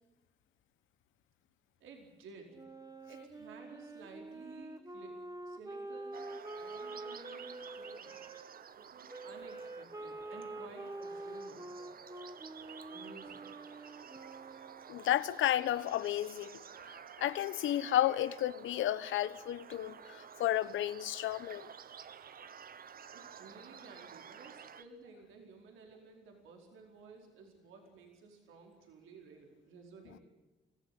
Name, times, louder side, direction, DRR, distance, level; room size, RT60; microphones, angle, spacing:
voice 1, 1.8-2.6 3.0-6.3 6.6-8.2 8.8-11.7 12.9-13.5 23.1-30.2, right 4 dB, 85° right, 4.7 m, -54 dB
Wind instrument woodwind instrument, 2.5-8.4 9.1-15.0, right 2 dB, 15° right, 2.0 m, -46 dB
sound 1, 6.1-24.8, right 7 dB, 50° right, 1.2 m, -52 dB
voice 2, 14.9-16.6 17.2-21.7, left 12 dB, 80° left, 1.1 m, -32 dB
24.5 x 16.0 x 10.0 m
cardioid pair, 90°, 20 cm